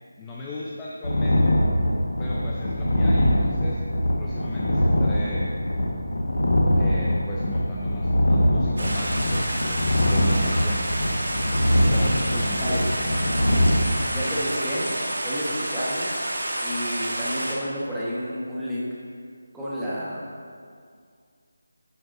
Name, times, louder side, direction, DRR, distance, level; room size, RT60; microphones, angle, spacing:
voice 1, 0.2-1.6 2.2-3.8 4.2-5.5 6.8-9.8 10.0-10.8 11.9-13.3, left 2 dB, 15° left, -5 dB, 0.7 m, -37 dB
sound 1, 1.0-13.8, equal, 70° left, 1.6 m, -22 dB
Stream, 8.8-17.6, right 1 dB, 70° right, 2.1 m, -29 dB
voice 2, 14.1-14.9 15.2-16.1 16.6-18.9 19.5-20.2, equal, 5° right, -10 dB, 1.5 m, -30 dB
10.5 x 9.9 x 2.8 m, 2.2 s
figure-of-eight pair, 165°, 0 cm